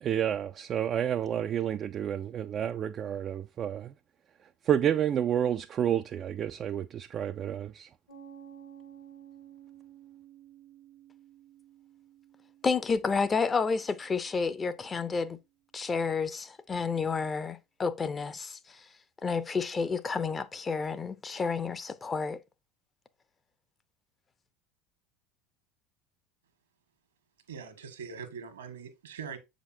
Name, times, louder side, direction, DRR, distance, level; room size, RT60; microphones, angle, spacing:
voice 1, 0.0-3.9 4.7-7.9, right 9 dB, 40° right, 0.4 m, -30 dB
Piano, 8.1-15.3, right 9 dB, 75° left, 3.0 m, -54 dB
voice 2, 12.6-15.4 15.7-18.8 19.2-22.4, left 5 dB, 25° left, 0.7 m, -30 dB
voice 3, 27.5-29.4, right 6 dB, 80° right, 1.5 m, -42 dB
7.3 x 5.1 x 2.7 m
figure-of-eight pair, 70°, 0 cm